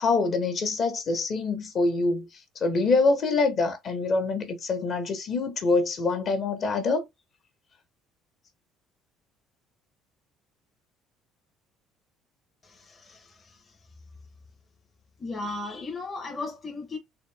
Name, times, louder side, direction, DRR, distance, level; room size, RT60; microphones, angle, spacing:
voice 1, 0.0-2.3 2.6-7.0, left 3 dB, 35° left, 1.1 m, -25 dB
voice 2, 12.6-13.6 15.2-17.0, left 3 dB, 15° left, 0.9 m, -36 dB
4.0 x 2.8 x 3.3 m
cardioid pair, 170°, 0 cm